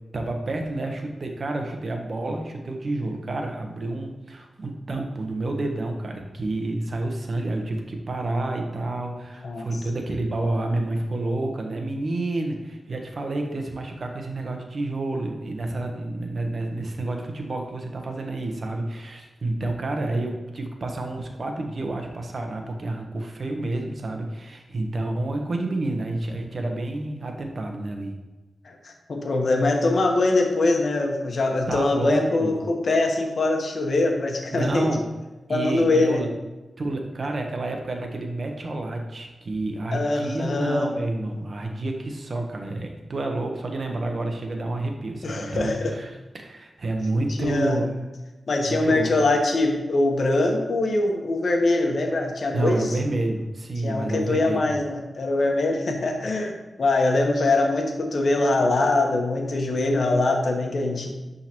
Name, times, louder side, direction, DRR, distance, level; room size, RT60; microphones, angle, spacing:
voice 1, 0.1-28.1 31.7-32.5 34.5-35.0 35.5-36.3 36.8-47.9 48.7-49.1 52.5-54.7, right 2 dB, 55° right, 3 dB, 1.1 m, -29 dB
voice 2, 28.6-34.9 35.5-36.2 39.9-40.9 45.2-45.9 47.4-47.8 48.5-52.9 53.8-61.1, left 2 dB, 65° left, 2 dB, 1.2 m, -23 dB
10.5 x 3.9 x 3.0 m, 1.1 s
cardioid pair, 45°, 0 cm